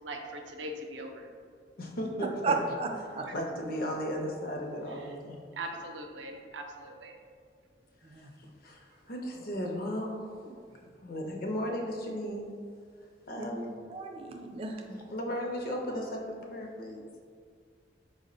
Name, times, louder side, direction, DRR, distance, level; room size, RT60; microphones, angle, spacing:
voice 1, 0.0-1.3 5.6-7.2, right 1 dB, 90° right, 3 dB, 0.5 m, -40 dB
voice 2, 1.8-2.5 3.3-5.4 8.2-10.4 10.7-12.5 13.3-13.7 14.9-17.0, equal, 55° left, 1 dB, 0.5 m, -36 dB
voice 3, 2.4-2.9 3.1-3.3 8.0-8.3 13.4-13.5 13.9-14.8, right 4 dB, 30° right, 3 dB, 0.3 m, -33 dB
4.6 x 2.1 x 3.7 m, 2.1 s
head